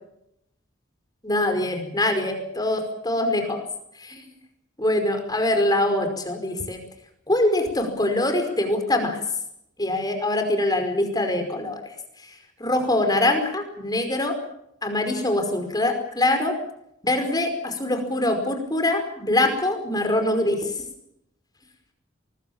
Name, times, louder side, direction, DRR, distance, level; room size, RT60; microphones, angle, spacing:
voice 1, 1.2-3.6 4.0-4.3 4.8-6.8 7.3-9.2 9.8-11.8 12.6-14.4 14.8-16.5 17.0-20.7, left 1 dB, 20° left, 6 dB, 5.2 m, -23 dB
24.0 x 20.5 x 7.4 m, 0.78 s
head